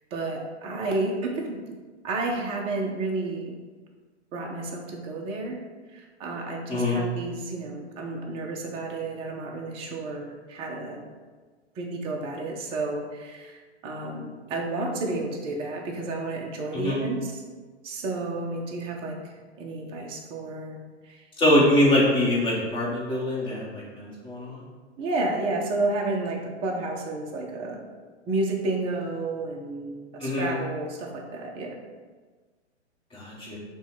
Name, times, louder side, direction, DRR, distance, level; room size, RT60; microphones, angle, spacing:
voice 1, 0.1-1.6 2.0-3.5 4.3-5.6 5.9-11.0 11.8-17.4 17.8-19.2 19.6-20.8 21.0-21.2 21.5-21.7 25.0-27.8 28.3-31.8, right 2 dB, 15° right, 0 dB, 0.5 m, -31 dB
voice 2, 6.7-7.0 16.7-17.0 21.4-24.6 30.2-30.5 33.1-33.6, left 1 dB, 15° left, -6 dB, 1.2 m, -23 dB
5.7 x 2.3 x 3.8 m, 1.4 s
hypercardioid pair, 120°, 35 cm